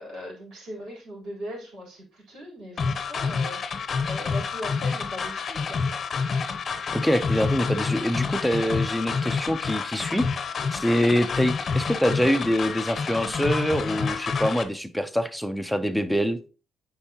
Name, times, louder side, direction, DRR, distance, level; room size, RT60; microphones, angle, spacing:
voice 1, 0.0-5.8, left 1 dB, 75° right, -4 dB, 4.0 m, -39 dB
sound 1, 2.8-14.6, left 5 dB, 45° left, 0.7 m, -28 dB
voice 2, 6.9-10.3 10.7-16.4, equal, ahead, 11 dB, 0.7 m, -25 dB
8.4 x 4.6 x 2.9 m, 0.36 s
cardioid pair, 90°, 0 cm